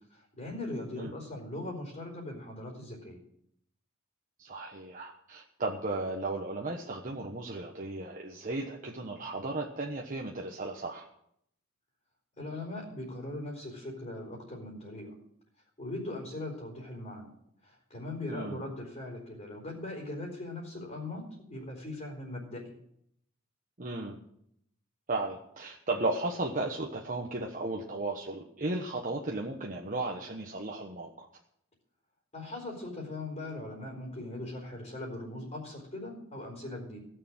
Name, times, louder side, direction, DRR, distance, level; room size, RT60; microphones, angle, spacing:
voice 1, 0.1-3.2 12.4-15.1 15.8-17.3 17.6-22.8 32.3-37.0, left 2 dB, 35° left, -2 dB, 3.9 m, -40 dB
voice 2, 4.4-11.1 18.3-18.6 23.8-24.2 25.1-31.3, right 2 dB, 40° right, 0 dB, 1.2 m, -35 dB
16.5 x 6.8 x 7.8 m, 0.74 s
head